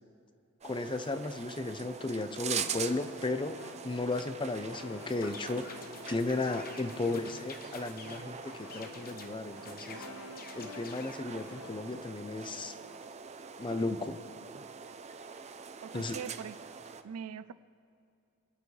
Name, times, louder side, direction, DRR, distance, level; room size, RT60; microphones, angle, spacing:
voice 1, 0.6-3.6 3.8-5.7 6.1-10.0 10.6-12.7 13.6-14.2 15.9-16.2, left 2 dB, 20° left, 10 dB, 0.6 m, -34 dB
sound 1, 0.6-17.0, right 7 dB, 30° right, 0.5 m, -43 dB
sound 2, 2.3-13.2, left 4 dB, 85° left, 0.9 m, -52 dB
sound 3, 5.1-8.2 8.7-9.3 9.6-11.2, left 4 dB, 40° left, 1.0 m, -49 dB
voice 2, 15.8-16.6 17.0-17.5, right 7 dB, 80° right, 15 dB, 0.5 m, -42 dB
27.0 x 9.4 x 3.3 m, 2.6 s
head